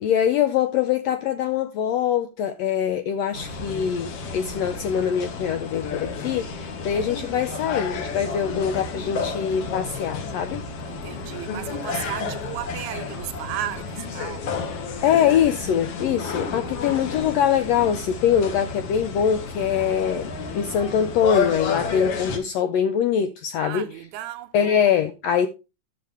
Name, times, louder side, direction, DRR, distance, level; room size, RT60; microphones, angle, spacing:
voice 1, 0.0-10.6 15.0-23.8 24.5-25.5, left 8 dB, 80° left, 1.5 m, -23 dB
sound 1, 3.3-22.4, left 5 dB, 60° left, 1.9 m, -31 dB
voice 2, 7.0-8.0 10.9-14.5 16.7-17.1 23.6-24.8, right 13 dB, 80° right, 1.9 m, -36 dB
11.5 x 6.8 x 3.4 m
omnidirectional pair, 3.6 m